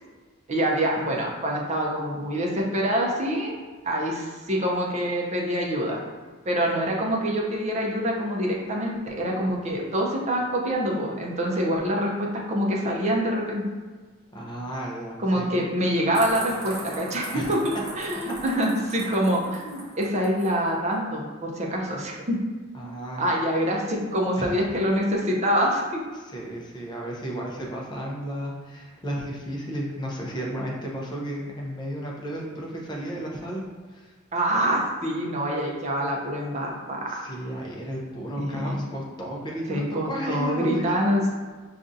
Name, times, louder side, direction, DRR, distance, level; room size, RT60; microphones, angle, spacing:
voice 1, 0.5-3.6 3.8-6.0 6.5-13.6 15.2-17.6 18.0-22.4 23.2-26.0 34.3-37.3 38.4-38.8 39.7-41.3, equal, 35° right, -2 dB, 0.6 m, -25 dB
voice 2, 14.3-15.4 17.3-17.5 18.2-18.3 19.0-19.1 22.7-23.2 24.4-24.5 26.1-33.6 33.9-34.1 37.1-40.8, right 1 dB, 20° left, -2 dB, 0.6 m, -33 dB
sound 1, 16.1-20.6, right 2 dB, 70° right, 0.9 m, -39 dB
5.2 x 2.4 x 2.6 m, 1.4 s
head